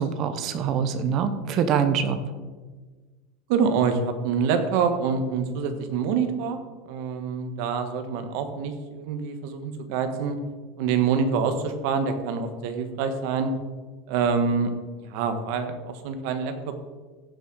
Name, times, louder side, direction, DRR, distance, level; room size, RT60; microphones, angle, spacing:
voice 1, 0.0-2.2, right 7 dB, 35° right, 9 dB, 0.9 m, -24 dB
voice 2, 3.5-6.6 6.8-10.4 10.8-13.5 14.1-14.7 15.0-16.5, right 6 dB, 55° right, 7 dB, 1.4 m, -26 dB
15.5 x 6.2 x 4.7 m, 1.3 s
supercardioid pair, 165°, 0 cm